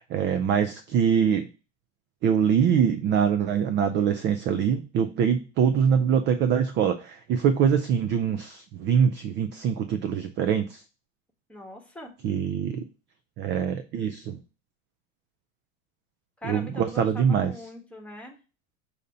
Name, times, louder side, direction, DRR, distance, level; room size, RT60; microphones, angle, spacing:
voice 1, 0.1-1.5 2.2-10.8 12.2-12.8 13.4-14.4 16.4-17.5, right 7 dB, 30° right, 10 dB, 0.4 m, -24 dB
voice 2, 11.5-12.1 16.4-18.4, left 1 dB, 5° left, 1 dB, 1.3 m, -41 dB
6.4 x 2.8 x 5.3 m, 0.34 s
hypercardioid pair, 110°, 39 cm